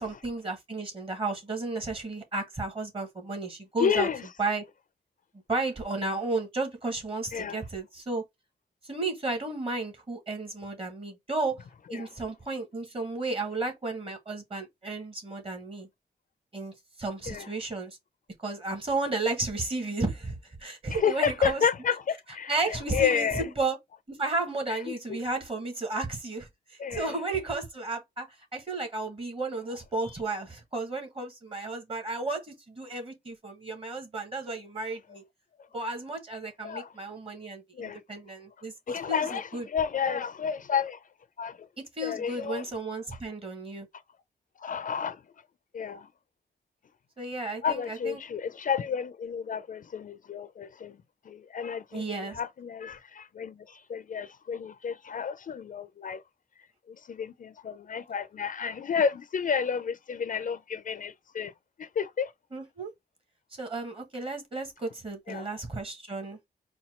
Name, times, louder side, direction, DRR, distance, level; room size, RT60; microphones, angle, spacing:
voice 1, 0.0-4.1 4.4-4.6 5.5-8.2 8.8-11.6 11.9-15.9 16.5-18.0 18.4-21.6 22.5-23.8 24.1-35.2 35.7-38.7 39.1-39.6 41.8-43.9 47.2-48.2 51.9-52.4 62.5-62.9 63.5-66.4, right 3 dB, 35° right, 1.5 m, -33 dB
voice 2, 3.8-4.2 7.3-7.6 11.9-12.1 17.3-17.5 20.9-23.5 24.9-25.2 26.8-27.1 36.6-36.9 37.7-38.0 38.9-41.0 41.4-41.7 42.0-42.6 44.6-45.2 45.7-46.1 47.6-51.0 51.2-52.1 52.3-56.2 56.9-61.5 61.8-62.3 65.3-65.5, left 7 dB, 50° left, 0.5 m, -31 dB
4.2 x 2.3 x 4.3 m
wide cardioid pair, 110°, 17 cm